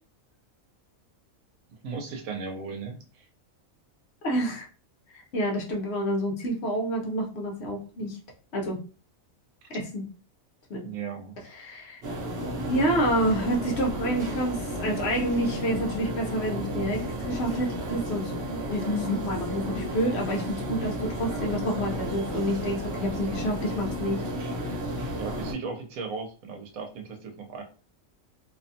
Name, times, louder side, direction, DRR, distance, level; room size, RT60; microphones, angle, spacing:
voice 1, 1.8-3.2 10.8-11.3 25.1-27.6, right 5 dB, 85° right, 3 dB, 1.1 m, -36 dB
voice 2, 4.2-4.7 5.1-8.2 8.5-8.8 9.7-10.0 10.7-10.9 11.6-12.0 12.7-24.2, equal, 60° left, 0 dB, 0.8 m, -28 dB
sound 1, 12.0-25.5, equal, 60° right, 1.0 m, -33 dB
2.7 x 2.2 x 2.6 m, 0.36 s
omnidirectional pair, 1.4 m